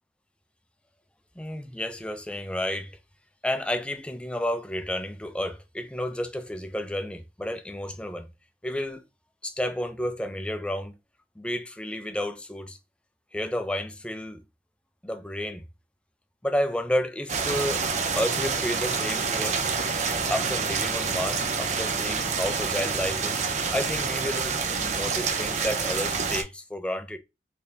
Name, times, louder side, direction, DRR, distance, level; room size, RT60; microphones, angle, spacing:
voice 1, 1.4-3.0 3.4-8.3 8.6-9.0 9.4-10.9 11.4-12.8 13.3-14.4 15.0-15.6 16.4-17.8 18.2-19.6 20.3-23.4 23.7-27.2, left 1 dB, 5° left, 0.4 m, -31 dB
sound 1, 17.3-26.4, right 5 dB, 40° right, 0.5 m, -27 dB
3.8 x 3.3 x 2.7 m
head